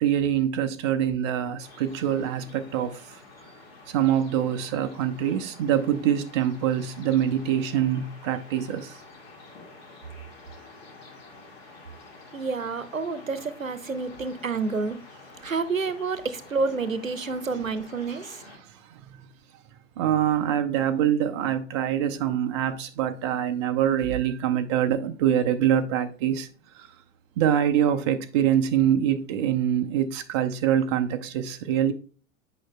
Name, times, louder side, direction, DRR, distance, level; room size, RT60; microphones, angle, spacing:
voice 1, 0.0-3.0 3.9-9.0 20.0-26.5 26.7-26.9 27.4-31.9, right 10 dB, 25° right, 0.3 m, -24 dB
sound 1, 1.6-18.6, left 3 dB, 50° left, 2.0 m, -49 dB
voice 2, 12.3-15.0 15.4-18.4, right 4 dB, 90° right, 0.6 m, -29 dB
8.6 x 5.3 x 2.2 m
figure-of-eight pair, 95°, 39 cm